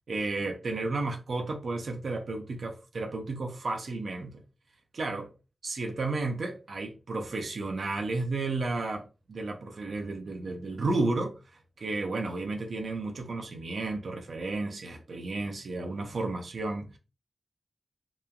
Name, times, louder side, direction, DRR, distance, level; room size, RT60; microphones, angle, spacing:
voice 1, 0.1-4.4 4.9-5.3 5.6-11.4 11.8-17.0, right 3 dB, 85° right, 0.5 m, -32 dB
2.9 x 2.2 x 2.4 m
wide cardioid pair, 80°, 0 cm